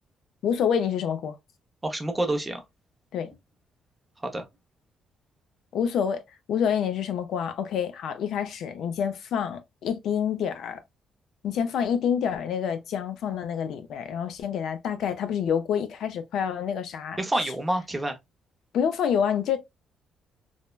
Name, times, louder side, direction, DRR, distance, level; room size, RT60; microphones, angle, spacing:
voice 1, 0.4-1.4 3.1-3.3 5.7-6.2 6.5-10.8 11.4-17.2 18.7-19.6, left 8 dB, 70° left, 0.4 m, -27 dB
voice 2, 1.8-2.6 4.2-4.4 17.2-18.2, right 1 dB, 10° right, 0.5 m, -28 dB
3.1 x 2.1 x 2.2 m
cardioid pair, 150°, 0 cm